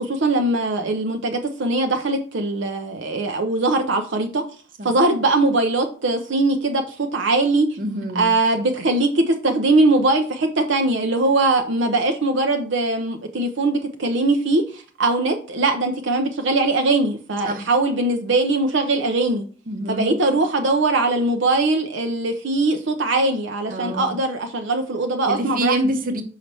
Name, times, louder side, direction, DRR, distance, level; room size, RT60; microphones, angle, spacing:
voice 1, 0.0-4.4 4.8-7.7 8.1-19.4 19.9-25.7, right 2 dB, 75° right, 4 dB, 0.7 m, -21 dB
voice 2, 7.8-8.3 17.5-17.7 19.7-20.1 23.7-24.1 25.3-26.2, equal, 50° right, 6 dB, 1.0 m, -26 dB
5.7 x 5.6 x 3.4 m, 0.40 s
head